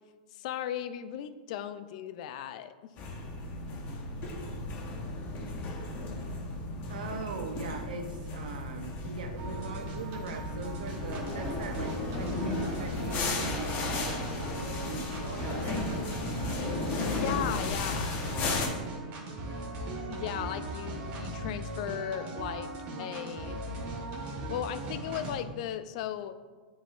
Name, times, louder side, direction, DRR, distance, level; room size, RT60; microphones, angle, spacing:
voice 1, 0.3-2.7 17.0-18.1 20.1-22.7 23.0-23.6 24.5-26.4, left 10 dB, 60° left, 12 dB, 0.4 m, -36 dB
sound 1, 3.0-18.7, left 2 dB, 40° left, 1.0 m, -35 dB
voice 2, 6.9-15.9 17.9-18.6, right 4 dB, 75° right, 5 dB, 0.7 m, -41 dB
sound 2, 9.4-25.4, right 1 dB, 45° right, 1.6 m, -38 dB
9.2 x 4.1 x 2.5 m, 1.4 s
hypercardioid pair, 125°, 4 cm